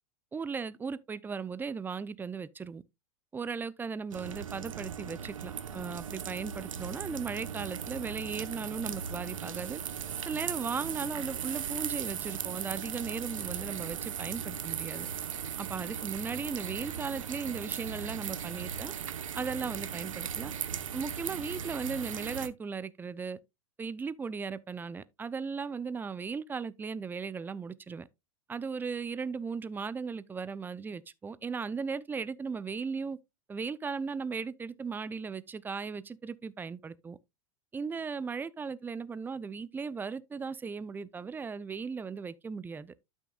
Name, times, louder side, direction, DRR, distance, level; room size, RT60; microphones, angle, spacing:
voice 1, 0.3-2.8 3.3-9.8 10.3-15.1 15.6-18.9 19.3-20.5 20.9-23.4 23.8-28.1 28.5-33.2 33.5-37.2 37.7-42.9, right 5 dB, 10° right, 0.5 m, -37 dB
sound 1, 4.1-22.5, right 8 dB, 70° right, 0.9 m, -38 dB
12.0 x 6.3 x 2.4 m
figure-of-eight pair, 90°, 17 cm